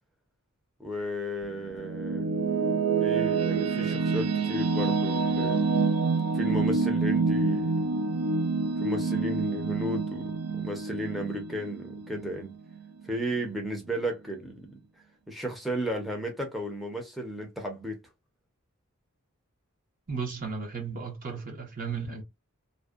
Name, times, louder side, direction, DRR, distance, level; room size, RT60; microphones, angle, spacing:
voice 1, 0.8-2.4 3.0-5.6 6.3-7.7 8.8-12.5 13.0-14.7 15.3-18.0, equal, ahead, 0.5 m, -34 dB
sound 1, 1.4-12.7, right 4 dB, 85° right, 0.4 m, -27 dB
voice 2, 20.1-22.2, right 5 dB, 40° right, 0.6 m, -34 dB
2.6 x 2.0 x 2.3 m
head